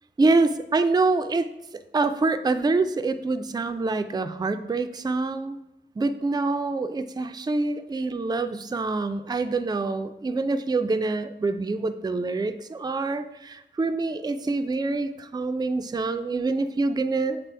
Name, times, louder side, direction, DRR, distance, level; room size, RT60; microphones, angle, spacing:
voice 1, 0.2-1.5 1.9-5.6 6.0-17.4, right 3 dB, 20° right, 9 dB, 0.3 m, -26 dB
7.5 x 4.0 x 3.3 m, 0.89 s
wide cardioid pair, 60°, 18 cm